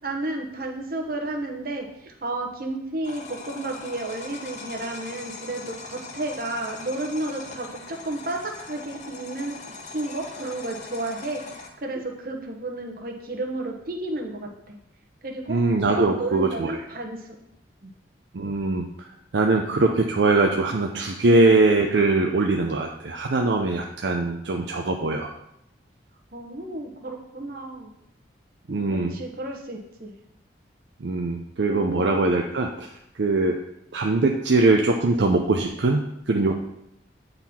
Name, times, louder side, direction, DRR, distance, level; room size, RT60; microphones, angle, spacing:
voice 1, 0.0-9.6 9.8-14.8 15.2-15.6 15.9-17.3 17.8-17.9 26.3-27.9 28.7-30.1 31.7-32.1, right 2 dB, 50° right, 2 dB, 1.0 m, -32 dB
sound 1, 3.0-11.7, left 4 dB, 40° left, 0.7 m, -41 dB
voice 2, 15.5-16.8 18.3-19.1 19.3-25.3 28.7-29.1 31.0-33.6 33.9-36.5, right 3 dB, 70° right, 2 dB, 0.5 m, -22 dB
9.1 x 4.0 x 4.3 m, 0.79 s
head